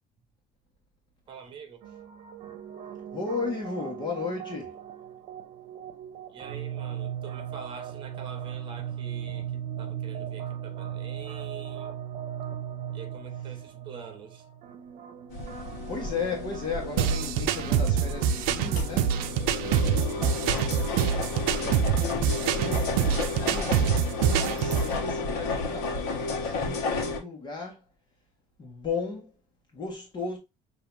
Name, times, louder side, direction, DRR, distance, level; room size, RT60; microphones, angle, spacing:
voice 1, 1.3-1.8 6.3-12.0 12.9-14.4 19.9-20.4, right 6 dB, 35° right, 1.2 m, -45 dB
sound 1, 1.8-21.4, right 10 dB, 65° right, 0.9 m, -39 dB
voice 2, 3.1-4.7 15.9-19.1 21.4-23.0 23.2-27.8 28.6-29.3 29.7-30.4, left 4 dB, 30° left, 1.4 m, -35 dB
sound 2, 15.3-27.2, left 3 dB, 85° left, 1.2 m, -32 dB
sound 3, 17.0-24.9, right 8 dB, 85° right, 0.6 m, -25 dB
6.6 x 2.8 x 2.6 m
cardioid pair, 140°, 14 cm